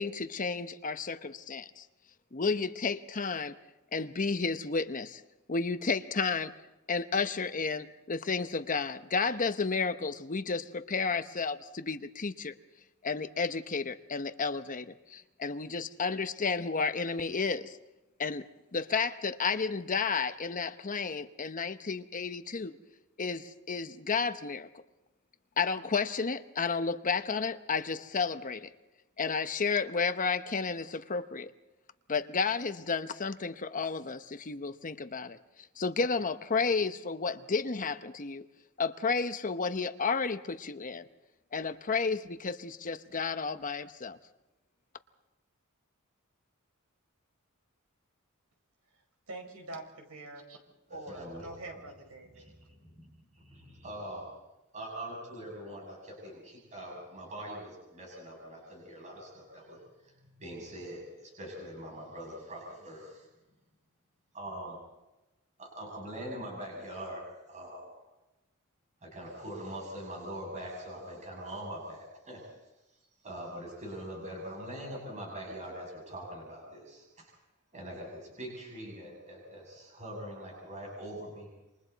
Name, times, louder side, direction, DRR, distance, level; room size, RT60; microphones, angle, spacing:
voice 1, 0.0-1.8 2.3-3.5 3.9-5.2 5.5-6.6 6.9-12.5 13.0-17.8 18.2-18.4 18.7-22.8 23.2-24.7 25.6-28.7 29.2-31.5 32.1-35.4 35.8-38.5 38.8-41.0 41.5-44.2, left 4 dB, 40° left, 10 dB, 0.9 m, -32 dB
voice 2, 49.3-50.6 50.9-52.5, right 2 dB, 85° right, 3 dB, 5.1 m, -45 dB
voice 3, 50.9-51.7 52.3-52.5 52.8-53.1 53.4-54.3 54.7-59.8 60.0-60.1 60.4-63.2 64.3-64.8 65.6-67.2 67.5-67.9 69.0-72.4 73.2-77.3 77.7-81.5, right 1 dB, 35° right, -2 dB, 7.3 m, -43 dB
28.0 x 26.0 x 4.1 m, 1.0 s
head